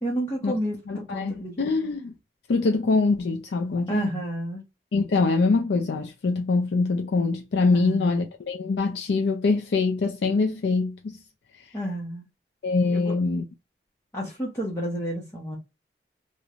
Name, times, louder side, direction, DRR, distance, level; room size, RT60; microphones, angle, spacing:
voice 1, 0.0-1.6 3.9-4.6 7.7-8.2 11.7-12.2 12.8-13.1 14.1-15.6, equal, 15° left, 0.7 m, -30 dB
voice 2, 0.9-2.1 2.5-4.1 4.9-11.2 12.6-13.4, left 3 dB, 80° left, 0.4 m, -24 dB
3.0 x 2.1 x 2.4 m
head